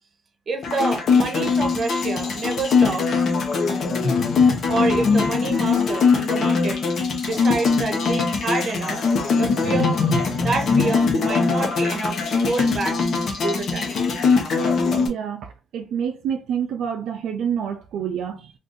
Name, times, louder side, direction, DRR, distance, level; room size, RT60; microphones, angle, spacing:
voice 1, 0.5-3.2 4.7-6.8 7.2-9.0 9.4-10.0 10.4-12.2 12.4-13.0 13.4-14.0, right 3 dB, 45° right, 0.9 m, -27 dB
sound 1, 0.6-15.1, left 4 dB, 60° left, 0.8 m, -21 dB
voice 2, 15.0-15.5 15.7-18.5, right 8 dB, 80° right, 0.3 m, -27 dB
2.6 x 2.4 x 3.6 m
cardioid pair, 90°, 0 cm